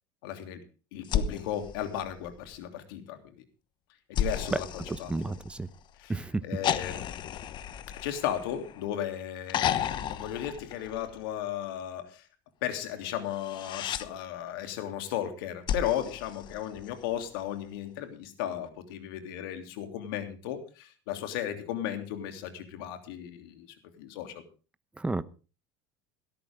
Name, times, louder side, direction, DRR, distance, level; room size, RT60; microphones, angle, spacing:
voice 1, 0.2-0.6 0.9-3.4 4.1-5.1 6.0-7.4 8.0-12.3 12.6-23.7 24.0-24.4, left 11 dB, 80° left, 6 dB, 3.1 m, -35 dB
sound 1, 1.0-2.6 4.1-5.8 6.6-8.9 9.5-11.3 13.3-14.1 15.7-17.1 18.7-18.8, left 9 dB, 40° left, 1.1 m, -33 dB
voice 2, 4.9-5.7 6.1-6.4 25.0-25.2, right 2 dB, 10° right, 15 dB, 0.8 m, -32 dB
17.5 x 13.0 x 3.6 m, 0.35 s
supercardioid pair, 130°, 12 cm